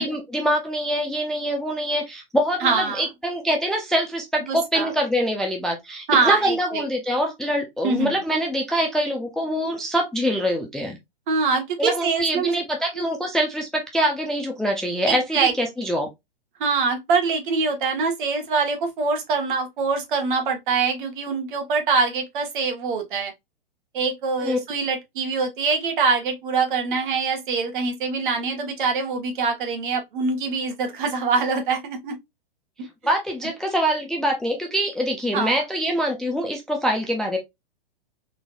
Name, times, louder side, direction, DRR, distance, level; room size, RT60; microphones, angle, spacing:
voice 1, 0.0-11.0 11.8-16.1 24.4-24.6 33.0-37.4, equal, ahead, 0.3 m, -24 dB
voice 2, 2.6-3.0 4.5-4.9 6.1-6.8 7.8-8.2 11.3-12.5 12.9-13.0 15.0-15.5 16.6-23.3 23.9-32.2 35.3-35.6, right 4 dB, 60° right, 1.6 m, -24 dB
3.9 x 3.1 x 2.5 m
hypercardioid pair, 125°, 29 cm